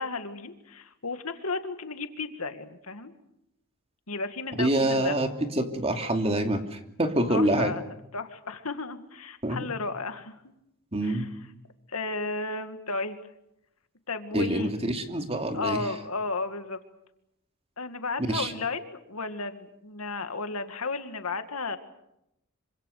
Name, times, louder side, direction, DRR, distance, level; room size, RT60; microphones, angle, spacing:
voice 1, 0.0-3.1 4.1-5.2 7.3-7.8 8.1-10.4 11.0-11.3 11.9-13.2 14.1-14.7 15.5-16.8 17.8-21.8, left 3 dB, 80° left, 8 dB, 2.2 m, -33 dB
voice 2, 4.6-5.3 5.6-7.7 9.4-9.6 10.9-11.2 14.3-15.8 18.3-18.5, right 1 dB, 30° right, 5 dB, 2.7 m, -26 dB
26.5 x 25.0 x 6.7 m, 0.82 s
head